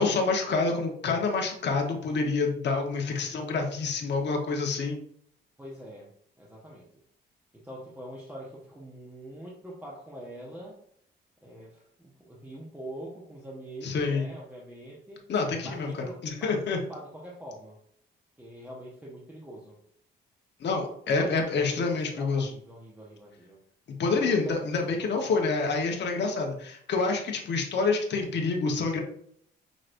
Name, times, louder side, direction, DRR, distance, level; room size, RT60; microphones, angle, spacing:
voice 1, 0.0-5.0 13.8-14.3 15.3-15.9 16.2-16.8 20.6-22.5 24.0-29.0, left 4 dB, 60° left, 2 dB, 1.2 m, -27 dB
voice 2, 5.6-6.1 6.4-6.9 7.5-10.8 11.4-15.2 15.6-17.8 18.4-19.8 21.2-23.6 24.2-25.0, right 1 dB, 10° right, -5 dB, 1.1 m, -44 dB
6.3 x 3.1 x 2.6 m, 0.65 s
cardioid pair, 90°, 20 cm